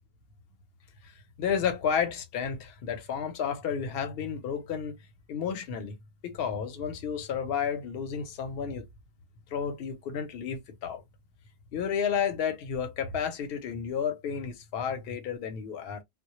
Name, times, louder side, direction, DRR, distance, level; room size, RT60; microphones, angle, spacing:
voice 1, 1.4-5.0 5.3-6.0 6.2-8.9 9.5-11.0 11.7-16.0, left 7 dB, 60° left, 0.7 m, -31 dB
2.1 x 2.0 x 2.9 m
omnidirectional pair, 1.2 m